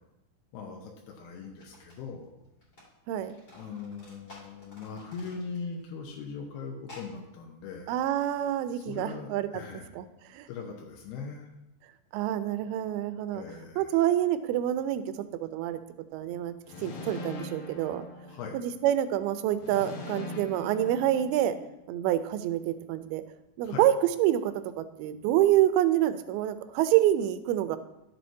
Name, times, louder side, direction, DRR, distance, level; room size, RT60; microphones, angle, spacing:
voice 1, 0.5-2.3 3.6-7.9 8.8-9.9 10.5-11.5 13.3-13.9 18.3-18.6 23.6-23.8, left 5 dB, 90° left, 0 dB, 2.9 m, -40 dB
sound 1, 0.8-0.9 1.4-2.9 3.1-5.9 6.1-6.2 6.8-7.1, left 2 dB, 25° left, 2.3 m, -52 dB
voice 2, 3.1-3.4 7.9-9.5 9.9-10.5 12.1-13.4 13.8-15.1 15.4-15.8 16.1-16.5 16.8-18.0 18.5-21.6 21.9-23.2 23.6-27.8, right 12 dB, 85° right, 12 dB, 2.4 m, -27 dB
sound 2, 16.7-18.8 19.6-21.8, left 2 dB, 70° left, 1.9 m, -41 dB
12.0 x 7.6 x 2.7 m, 0.90 s
omnidirectional pair, 4.5 m